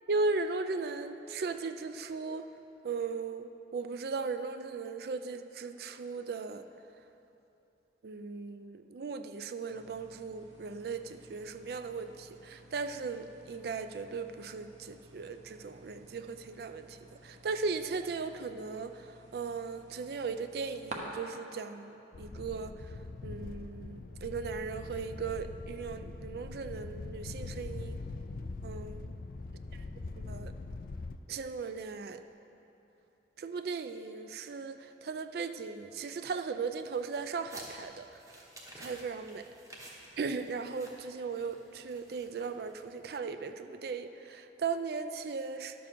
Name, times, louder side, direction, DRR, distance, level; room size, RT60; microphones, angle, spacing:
voice 1, 0.1-2.5 2.8-6.6 8.0-17.0 17.2-22.9 23.2-28.0 28.6-29.1 30.1-30.5 31.3-32.2 33.4-38.2 38.8-39.5 40.2-45.9, right 4 dB, 55° right, 9 dB, 0.4 m, -37 dB
sound 1, 9.7-21.0, right 2 dB, 40° right, 1.0 m, -54 dB
sound 2, 22.1-31.2, left 3 dB, 50° left, 0.4 m, -42 dB
sound 3, 36.8-43.0, right 1 dB, 20° right, 1.1 m, -53 dB
11.0 x 7.2 x 4.6 m, 2.9 s
head